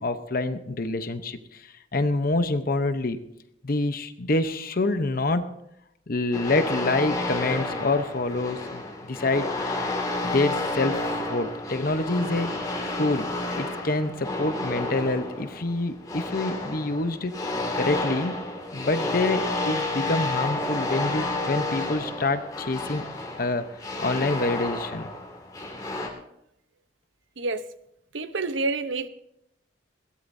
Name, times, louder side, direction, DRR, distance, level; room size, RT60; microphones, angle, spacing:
voice 1, 0.0-3.2 3.6-5.5 6.1-9.5 10.2-12.5 13.0-17.3 17.8-18.4 18.7-23.1 23.4-25.1, left 2 dB, 50° left, 9 dB, 0.8 m, -27 dB
sound 1, 6.3-26.1, left 2 dB, 20° left, 2.5 m, -31 dB
voice 2, 28.1-29.1, right 3 dB, 75° right, 11 dB, 0.9 m, -28 dB
21.5 x 16.5 x 2.7 m, 0.79 s
head